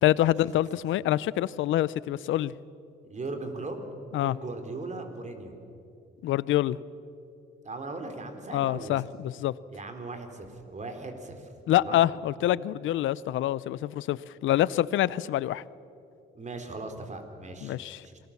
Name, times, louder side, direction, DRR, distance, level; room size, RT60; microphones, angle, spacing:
voice 1, 0.0-2.5 4.1-4.4 6.2-6.8 8.5-9.5 11.7-15.6 17.6-18.0, left 13 dB, 80° left, 19 dB, 0.6 m, -26 dB
voice 2, 3.0-3.8 4.2-5.5 7.6-9.0 9.7-11.5 11.8-12.1 16.4-18.2, right 3 dB, 35° right, 6 dB, 3.6 m, -38 dB
27.0 x 19.0 x 7.2 m, 2.7 s
cardioid pair, 90°, 20 cm